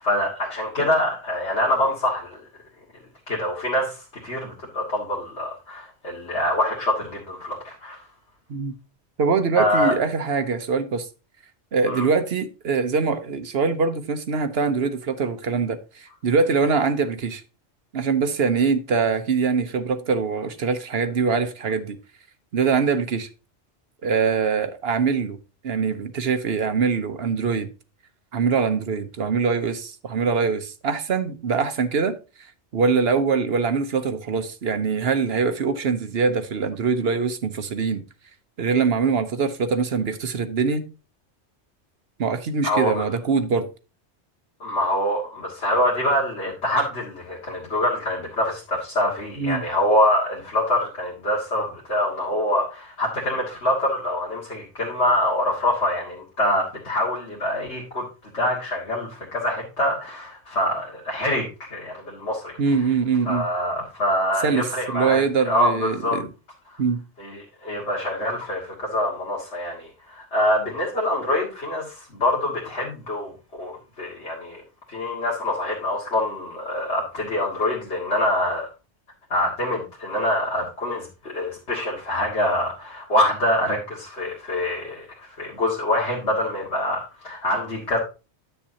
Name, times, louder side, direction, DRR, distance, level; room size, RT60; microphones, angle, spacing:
voice 1, 0.0-2.4 3.3-8.1 9.5-9.9 11.9-12.1 42.6-43.0 44.6-62.6 63.3-66.2 67.2-73.3 73.6-74.6 74.9-78.7 79.3-88.0, left 1 dB, 70° left, 2.3 m, -25 dB
voice 2, 9.2-11.1 11.7-17.4 17.9-22.0 22.5-23.3 24.0-25.4 25.6-27.7 28.3-32.2 32.7-38.0 38.6-40.8 42.2-43.7 49.4-49.6 62.6-63.4 64.4-66.2 66.8-67.0, right 5 dB, 60° right, 1.0 m, -23 dB
10.0 x 7.8 x 2.8 m
omnidirectional pair, 1.2 m